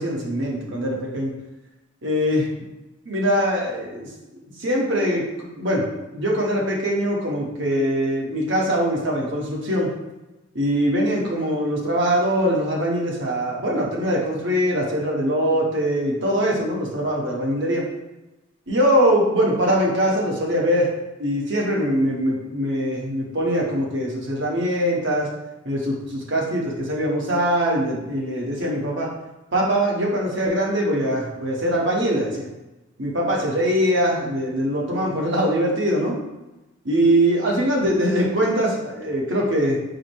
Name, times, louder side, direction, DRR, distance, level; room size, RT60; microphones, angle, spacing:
voice 1, 0.0-1.3 2.0-2.5 3.0-4.1 4.6-5.8 6.1-9.9 10.5-17.8 18.7-20.9 21.2-25.3 25.6-29.1 29.5-32.5 33.0-36.2 36.8-39.8, equal, 65° right, -3 dB, 1.1 m, -22 dB
4.8 x 2.1 x 4.6 m, 1.0 s
head